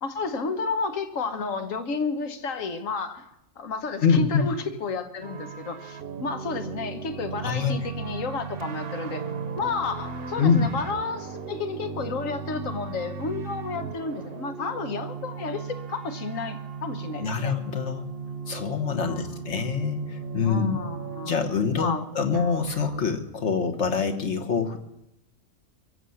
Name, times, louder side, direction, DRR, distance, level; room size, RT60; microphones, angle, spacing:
voice 1, 0.0-3.3 3.6-9.2 9.6-17.5 19.0-19.5 20.4-21.5 21.7-22.0, left 4 dB, 80° left, 8 dB, 1.6 m, -31 dB
voice 2, 4.0-4.5 7.4-7.8 10.4-10.6 17.2-18.0 18.5-20.8 21.2-24.8, left 5 dB, 60° left, 6 dB, 1.6 m, -25 dB
sound 1, 5.2-21.4 22.3-23.1, right 5 dB, 50° right, 1.0 m, -37 dB
23.5 x 7.9 x 7.1 m, 0.82 s
omnidirectional pair, 1.3 m